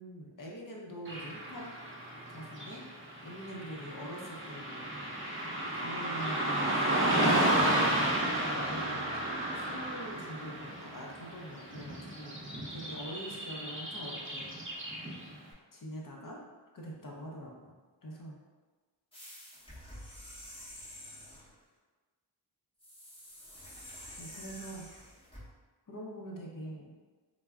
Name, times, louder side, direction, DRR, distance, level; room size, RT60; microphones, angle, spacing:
voice 1, 0.0-1.7 2.3-2.8 3.2-4.8 5.4-9.2 9.5-14.5 15.7-16.5 16.7-18.4 24.2-24.9 25.9-27.0, equal, 45° left, -2 dB, 0.6 m, -44 dB
Car passing by / Traffic noise roadway noise, 1.0-15.3, right 1 dB, 25° right, 0.6 m, -33 dB
sound 1, 19.1-21.5 22.8-25.5, left 1 dB, 10° left, 0.8 m, -48 dB
2.2 x 2.0 x 3.4 m, 1.3 s
cardioid pair, 50°, 46 cm